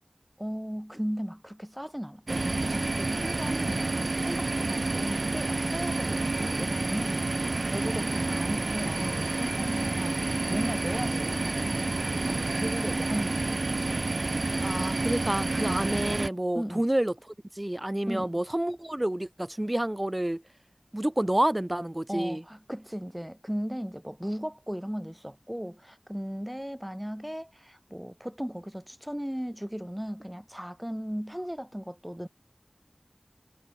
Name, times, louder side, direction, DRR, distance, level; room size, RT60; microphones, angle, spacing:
voice 1, 0.4-4.0 4.2-7.3 7.6-10.2 10.5-11.6 12.2-13.6 16.5-16.8 18.1-18.4 22.1-32.3, equal, 5° right, 2.0 m, -36 dB
sound 1, 2.3-16.3, right 2 dB, 85° right, 1.0 m, -29 dB
voice 2, 14.6-17.1 17.5-20.4 20.9-22.4, right 1 dB, 25° right, 0.9 m, -29 dB
wide cardioid pair, 45°, 0 cm